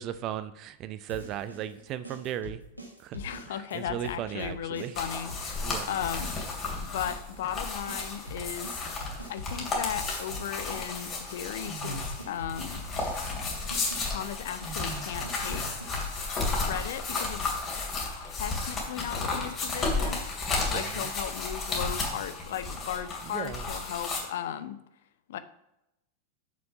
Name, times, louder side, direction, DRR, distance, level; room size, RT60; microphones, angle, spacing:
voice 1, 0.0-2.6 3.0-3.2 3.5-5.0 5.6-6.0 20.6-21.1 23.3-23.6, right 10 dB, 35° right, 13 dB, 0.5 m, -36 dB
sound 1, 1.1-6.7 6.9-16.7, equal, 90° right, 1.4 m, -43 dB
voice 2, 3.1-6.3 6.8-8.8 9.3-12.8 14.0-16.0 16.3-17.5 18.0-24.8 25.3-25.4, left 10 dB, 55° left, 12 dB, 0.6 m, -36 dB
sound 2, 4.9-24.2, left 3 dB, 25° left, 2.5 m, -33 dB
6.9 x 6.3 x 5.6 m, 0.85 s
figure-of-eight pair, 90°, 0 cm